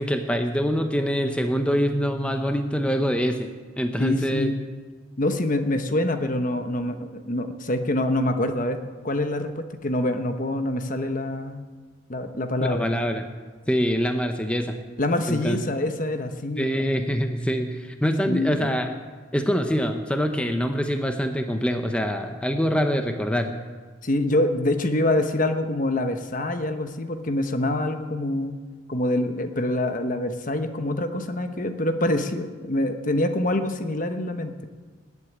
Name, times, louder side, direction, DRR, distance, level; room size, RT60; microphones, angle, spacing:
voice 1, 0.0-3.5 3.8-4.5 12.6-13.3 13.7-14.8 15.3-15.6 16.6-18.9 19.3-23.5, equal, 5° left, 5 dB, 0.8 m, -24 dB
voice 2, 4.0-4.6 5.2-11.6 12.1-12.9 15.0-16.7 18.2-18.8 24.0-28.6 28.9-34.7, left 1 dB, 40° left, 7 dB, 1.1 m, -25 dB
20.0 x 8.2 x 8.8 m, 1.5 s
head